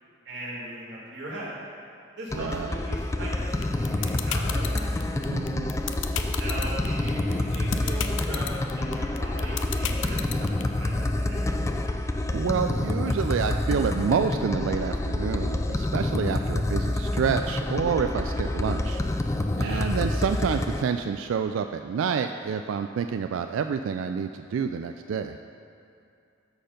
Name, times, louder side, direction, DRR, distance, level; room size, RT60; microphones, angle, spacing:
voice 1, 0.3-1.5 2.2-5.0 6.4-11.5 19.6-19.8, right 1 dB, 65° right, -6 dB, 2.3 m, -38 dB
sound 1, 2.3-20.8, left 1 dB, 15° left, 0.4 m, -28 dB
voice 2, 2.3-2.8 5.3-5.7 12.3-19.0 19.6-25.4, right 6 dB, 90° right, 7 dB, 0.3 m, -28 dB
sound 2, 3.6-10.6, left 10 dB, 70° left, 0.5 m, -31 dB
13.0 x 4.4 x 5.1 m, 2.5 s
head